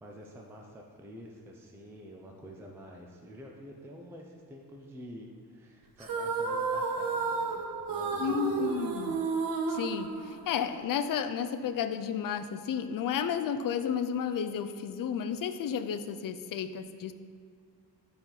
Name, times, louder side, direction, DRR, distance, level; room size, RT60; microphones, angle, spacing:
voice 1, 0.0-8.7, equal, 5° right, 0 dB, 0.4 m, -48 dB
sound 1, 6.0-10.8, right 4 dB, 55° right, 0.7 m, -32 dB
voice 2, 8.2-9.2 9.7-17.1, left 8 dB, 55° left, 10 dB, 0.5 m, -32 dB
11.5 x 4.3 x 4.0 m, 2.2 s
wide cardioid pair, 175°, 41 cm